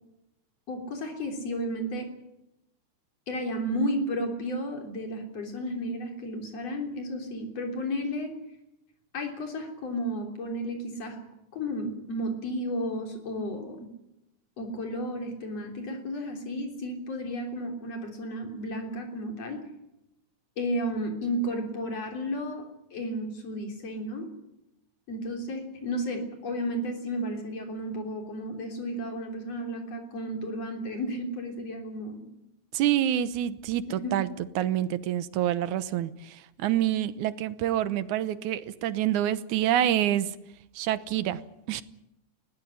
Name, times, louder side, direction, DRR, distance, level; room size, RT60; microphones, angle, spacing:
voice 1, 0.7-2.1 3.3-8.3 9.1-11.2 11.5-13.9 14.6-19.6 20.6-22.6 22.9-24.3 25.1-32.3 34.0-34.2, equal, 55° left, 3 dB, 4.6 m, -33 dB
voice 2, 32.7-34.3 34.6-40.3 40.8-41.4 41.7-41.8, right 11 dB, 85° right, 14 dB, 2.4 m, -27 dB
21.0 x 16.0 x 10.0 m, 0.87 s
omnidirectional pair, 3.4 m